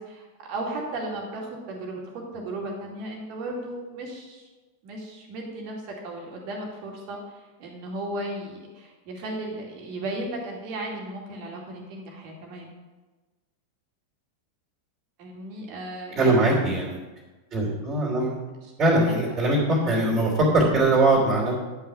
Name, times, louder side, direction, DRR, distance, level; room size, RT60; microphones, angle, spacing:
voice 1, 0.0-2.0 2.3-4.4 4.8-12.7 15.2-16.4 18.6-18.7 19.1-19.4, right 1 dB, 45° right, 0 dB, 2.3 m, -35 dB
voice 2, 16.2-17.0 17.5-18.4 18.8-21.7, right 2 dB, 25° right, -3 dB, 3.0 m, -21 dB
10.0 x 5.7 x 6.0 m, 1.2 s
figure-of-eight pair, 90°, 0 cm